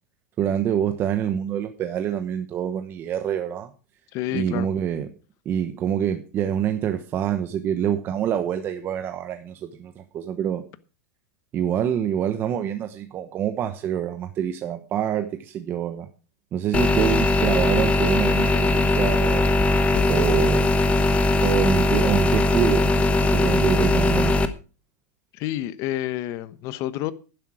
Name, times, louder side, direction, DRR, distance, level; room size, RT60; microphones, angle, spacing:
voice 1, 0.4-3.7 4.3-5.1 5.4-10.6 11.5-16.1 16.5-19.5 20.1-20.7 21.4-22.9 23.3-24.5, right 9 dB, 25° right, 1.0 m, -26 dB
voice 2, 4.1-4.7 25.3-27.1, left 14 dB, 40° left, 1.0 m, -29 dB
sound 1, 16.7-24.5, left 2 dB, 15° left, 1.1 m, -20 dB
11.5 x 10.5 x 4.9 m
supercardioid pair, 160°, 9 cm